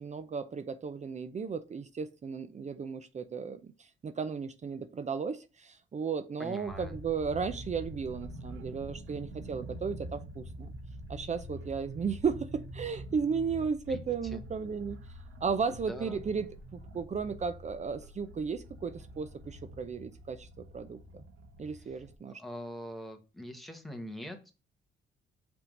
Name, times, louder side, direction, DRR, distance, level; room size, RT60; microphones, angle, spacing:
voice 1, 0.0-10.7 11.1-15.0 15.4-16.5 16.7-21.2 21.6-22.4, right 5 dB, 35° right, 0.6 m, -35 dB
voice 2, 6.4-6.9 13.9-14.0 14.3-14.4 15.7-16.2 21.9-22.0 22.3-24.5, equal, ahead, 1.4 m, -43 dB
sound 1, 6.7-22.1, equal, 90° right, 1.3 m, -46 dB
5.6 x 3.7 x 5.3 m
cardioid pair, 90°, 20 cm